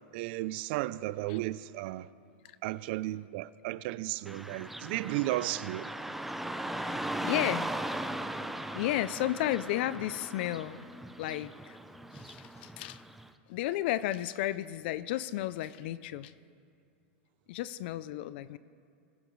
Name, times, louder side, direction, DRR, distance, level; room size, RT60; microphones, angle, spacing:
voice 1, 0.1-2.1 2.6-5.9, right 17 dB, 55° right, 17 dB, 0.4 m, -34 dB
Car passing by / Traffic noise roadway noise, 4.3-13.3, right 1 dB, 5° right, 0.5 m, -38 dB
voice 2, 6.7-7.7 8.7-10.9 11.2-11.8 12.1-13.0 13.5-16.3 17.5-18.6, left 14 dB, 60° left, 16 dB, 0.4 m, -33 dB
21.0 x 9.9 x 3.1 m, 2.3 s
hypercardioid pair, 125°, 7 cm